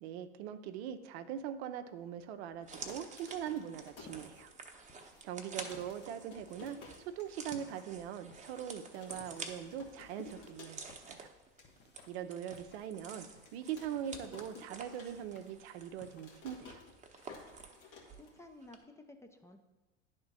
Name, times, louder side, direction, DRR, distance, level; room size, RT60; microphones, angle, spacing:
voice 1, 0.0-4.5 5.2-6.8 7.1-11.3 12.1-13.3 13.5-16.8, right 9 dB, 60° right, 9 dB, 0.6 m, -42 dB
sound 1, 2.6-4.8 5.2-5.3 5.5-7.5 7.9-8.0 8.2-8.5 8.9-11.1 11.4-11.7 12.2-12.3 13.1-15.5 15.8-18.7, left 4 dB, 75° left, 1.8 m, -55 dB
sound 2, 2.6-18.3 18.6-18.8, right 4 dB, 20° right, 0.9 m, -50 dB
sound 3, 3.8-16.8, left 5 dB, 30° left, 1.0 m, -62 dB
voice 2, 5.4-5.9 18.1-19.6, left 2 dB, 10° left, 5 dB, 0.5 m, -55 dB
10.5 x 3.6 x 4.1 m, 1.1 s
hypercardioid pair, 80°, 36 cm